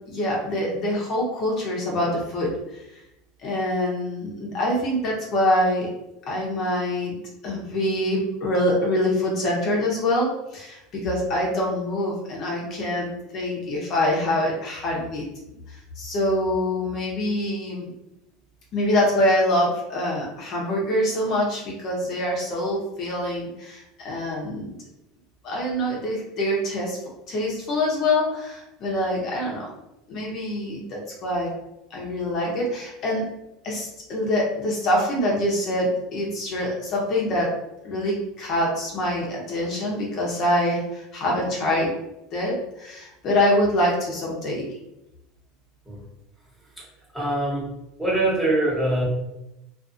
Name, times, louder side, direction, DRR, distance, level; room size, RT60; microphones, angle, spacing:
voice 1, 0.1-3.0 3.4-5.9 6.3-7.2 7.4-15.2 15.7-17.9 18.7-24.7 25.4-27.0 27.3-29.7 30.1-31.5 31.9-33.3 33.6-37.5 37.8-41.9 42.3-44.6, left 1 dB, 45° left, -2 dB, 0.8 m, -25 dB
voice 2, 47.1-47.7 48.0-49.0, right 1 dB, ahead, -6 dB, 1.1 m, -23 dB
2.5 x 2.4 x 2.6 m, 0.89 s
supercardioid pair, 125°, 0 cm